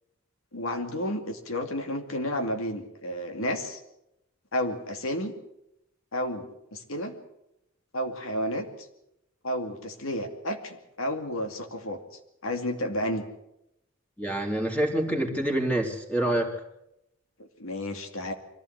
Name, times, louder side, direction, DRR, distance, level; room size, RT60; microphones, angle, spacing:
voice 1, 0.5-3.8 4.5-5.3 6.1-7.1 7.9-8.7 9.4-12.0 12.4-13.2 17.4-18.3, left 1 dB, 75° left, 5 dB, 2.5 m, -31 dB
voice 2, 14.2-16.5, right 1 dB, 5° left, 2 dB, 3.1 m, -26 dB
23.5 x 15.5 x 8.1 m, 0.83 s
head